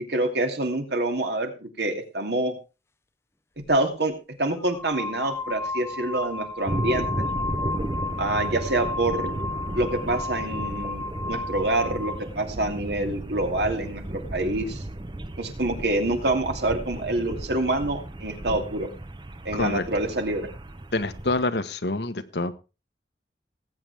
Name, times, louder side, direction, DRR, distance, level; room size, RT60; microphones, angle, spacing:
voice 1, 0.1-2.6 3.7-4.1 4.4-7.2 8.2-9.4 9.7-14.8 15.4-18.9 19.4-20.5, right 2 dB, 70° right, 4 dB, 2.6 m, -26 dB
sound 1, 3.6-3.8 4.6-12.3, left 3 dB, 15° left, 0.6 m, -33 dB
sound 2, 6.6-21.5, right 1 dB, 25° right, 0.7 m, -34 dB
voice 2, 19.5-19.8 20.9-22.5, left 2 dB, 70° left, 10 dB, 1.2 m, -26 dB
19.0 x 9.0 x 3.5 m, 0.31 s
head